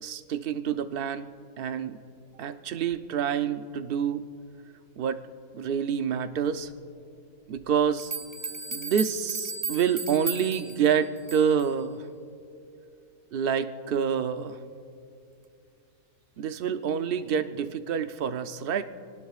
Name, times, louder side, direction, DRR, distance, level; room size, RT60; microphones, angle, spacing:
voice 1, 0.0-1.3 1.6-2.0 2.3-4.3 5.0-5.2 5.5-6.7 7.5-8.1 8.7-12.1 13.3-14.6 16.4-18.8, right 7 dB, 50° right, 9 dB, 0.7 m, -27 dB
sound 1, 8.0-11.7, right 4 dB, 30° right, 1.1 m, -36 dB
28.0 x 19.0 x 2.4 m, 2.5 s
omnidirectional pair, 1.5 m